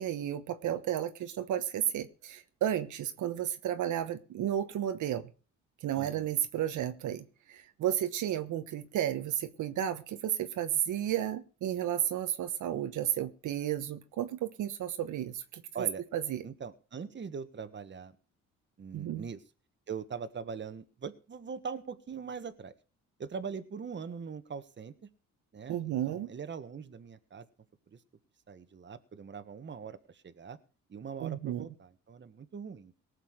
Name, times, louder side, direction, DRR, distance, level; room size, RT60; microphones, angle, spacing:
voice 1, 0.0-5.3 5.8-15.9 16.1-16.4 18.9-19.2 25.7-26.3 31.2-31.7, right 11 dB, 75° right, 9 dB, 1.2 m, -33 dB
voice 2, 5.9-6.3 15.7-16.0 16.4-18.1 18.8-19.4 19.9-22.7 23.2-24.9 25.5-27.5 27.9-28.0 28.5-30.6 30.9-32.9, right 6 dB, 40° right, 10 dB, 1.5 m, -42 dB
18.5 x 6.7 x 6.5 m, 0.36 s
cardioid pair, 90°, 30 cm